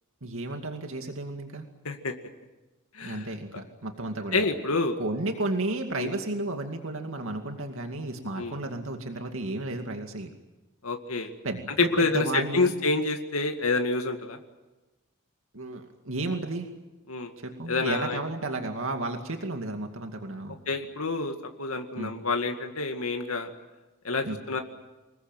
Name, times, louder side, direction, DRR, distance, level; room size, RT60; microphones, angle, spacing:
voice 1, 0.2-1.7 3.0-4.5 5.0-10.3 11.2-12.7 15.5-16.7 17.4-20.6 22.0-22.1 24.2-24.4, right 2 dB, 65° right, 4 dB, 2.4 m, -33 dB
voice 2, 2.9-3.2 4.3-5.0 6.0-6.1 8.4-8.5 10.8-11.3 11.8-14.4 17.1-17.3 17.7-18.2 20.7-23.5 24.0-24.6, left 3 dB, 80° left, 5 dB, 2.1 m, -28 dB
26.0 x 21.0 x 9.1 m, 1.1 s
head